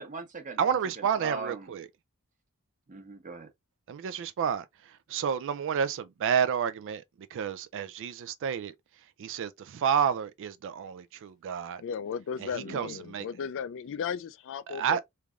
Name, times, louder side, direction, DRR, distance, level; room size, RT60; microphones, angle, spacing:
voice 1, 0.0-1.7 2.9-3.5 12.7-12.8, right 3 dB, 35° right, 1.0 m, -40 dB
voice 2, 0.6-1.9 3.9-4.6 5.1-7.0 7.3-8.7 9.2-11.8 12.7-13.3 14.7-15.0, right 8 dB, 60° right, 0.3 m, -30 dB
voice 3, 11.8-15.0, left 7 dB, 60° left, 0.4 m, -35 dB
3.5 x 3.3 x 2.4 m
head